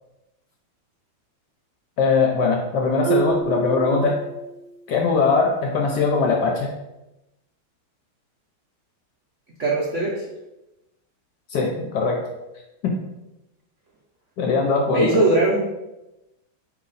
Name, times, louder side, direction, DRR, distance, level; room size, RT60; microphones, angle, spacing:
voice 1, 2.0-4.2 4.9-6.7 11.5-12.2 12.8-12.9 14.4-15.2, left 4 dB, 70° left, 1 dB, 1.0 m, -21 dB
Marimba xylophone, 3.0-4.8, right 6 dB, 60° right, 1.1 m, -27 dB
voice 2, 9.6-10.2 14.9-15.6, right 2 dB, 85° right, -4 dB, 0.6 m, -20 dB
4.4 x 3.0 x 4.0 m, 0.95 s
omnidirectional pair, 2.3 m